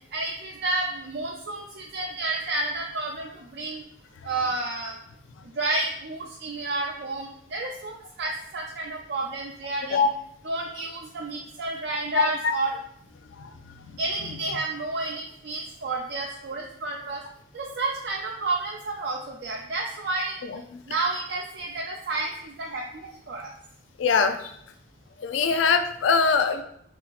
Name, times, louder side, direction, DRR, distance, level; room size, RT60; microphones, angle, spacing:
voice 1, 0.1-3.8 4.2-4.9 5.6-10.0 10.5-12.7 14.0-17.2 17.5-20.4 20.9-23.5, right 2 dB, 55° right, -1 dB, 0.5 m, -30 dB
voice 2, 12.1-12.5 13.3-13.5 14.2-14.3 20.4-20.8 24.0-24.5 25.2-26.6, left 5 dB, 75° left, 8 dB, 0.4 m, -23 dB
6.8 x 2.8 x 2.4 m, 0.69 s
head